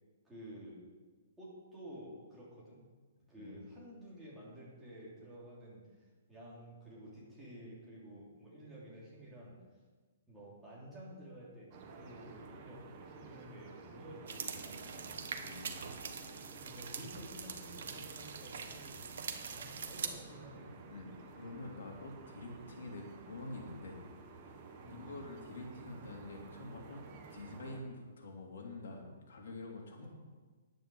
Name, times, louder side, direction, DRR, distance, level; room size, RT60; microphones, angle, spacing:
voice 1, 0.2-0.8 1.4-2.8 3.3-9.5 10.3-15.2 16.6-20.9 24.8-25.1 30.0-30.1, right 1 dB, 5° right, -7 dB, 3.1 m, -52 dB
sound 1, 11.7-27.8, right 4 dB, 25° right, 1.2 m, -53 dB
sound 2, 14.3-20.1, right 6 dB, 60° right, 1.2 m, -43 dB
voice 2, 15.4-15.8 18.6-18.7 20.9-24.0 24.8-27.0 27.3-30.1, left 2 dB, 70° left, 0 dB, 3.0 m, -47 dB
10.5 x 9.2 x 6.3 m, 1.4 s
hypercardioid pair, 175°, 0 cm